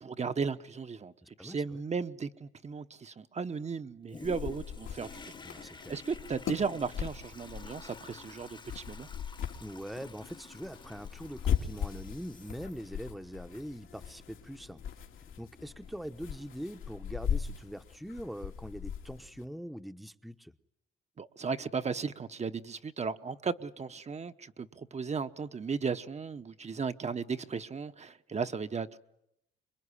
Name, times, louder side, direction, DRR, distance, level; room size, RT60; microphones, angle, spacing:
voice 1, 0.0-1.1 1.4-9.1 21.2-29.0, right 5 dB, 35° right, 1.0 m, -36 dB
voice 2, 1.2-1.8 5.4-6.0 9.6-15.0 15.4-20.5, equal, ahead, 1.0 m, -43 dB
Toilet flush, 4.1-16.5 17.1-17.2, left 4 dB, 25° left, 1.1 m, -52 dB
sound 1, 4.2-19.4, left 8 dB, 80° left, 2.5 m, -39 dB
26.0 x 22.0 x 9.9 m
cardioid pair, 90°, 20 cm